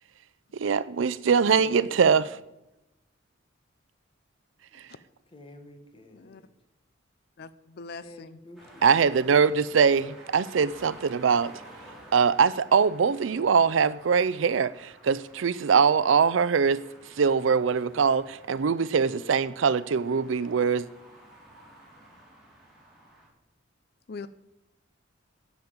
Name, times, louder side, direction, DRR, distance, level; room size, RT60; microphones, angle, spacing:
voice 1, 0.5-2.2 8.8-11.5 12.1-16.8 17.2-20.9, right 6 dB, 75° right, 0.5 m, -22 dB
voice 2, 1.4-2.4 5.3-6.5 8.0-8.8 9.1-9.5, left 1 dB, 30° left, 1.6 m, -49 dB
voice 3, 7.4-8.4 24.1-24.3, left 4 dB, 55° left, 0.5 m, -42 dB
sound 1, 8.6-23.3, right 1 dB, ahead, 4.8 m, -52 dB
9.5 x 7.2 x 8.7 m
head